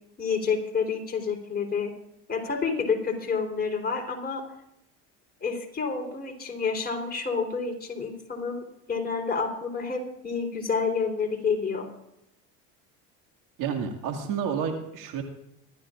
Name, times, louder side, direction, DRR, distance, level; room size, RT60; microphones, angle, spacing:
voice 1, 0.2-1.9 2.3-4.4 5.4-8.6 8.9-11.9, left 5 dB, 25° left, 0 dB, 3.9 m, -29 dB
voice 2, 13.6-15.2, right 7 dB, 65° right, 4 dB, 2.3 m, -30 dB
24.5 x 13.0 x 2.5 m, 0.82 s
supercardioid pair, 90°, 36 cm